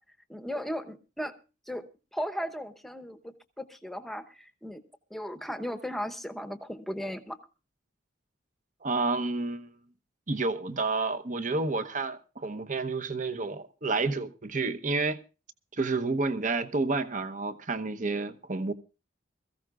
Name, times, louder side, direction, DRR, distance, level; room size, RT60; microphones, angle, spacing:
voice 1, 0.3-1.4 1.7-4.8 5.1-7.4, equal, ahead, 0.9 m, -36 dB
voice 2, 8.8-9.7 10.3-15.2 15.8-18.7, right 3 dB, 40° right, 0.9 m, -30 dB
22.0 x 15.0 x 2.4 m
head